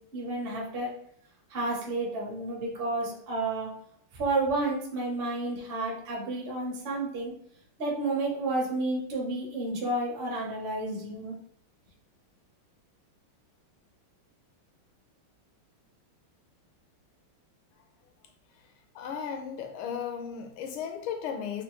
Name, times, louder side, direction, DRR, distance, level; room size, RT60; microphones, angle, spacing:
voice 1, 0.1-0.9 1.5-3.7 4.1-7.3 7.8-11.4, right 2 dB, 45° right, -3 dB, 0.7 m, -31 dB
voice 2, 18.9-21.6, left 7 dB, 80° left, 5 dB, 1.4 m, -35 dB
4.3 x 2.6 x 3.0 m, 0.67 s
omnidirectional pair, 2.4 m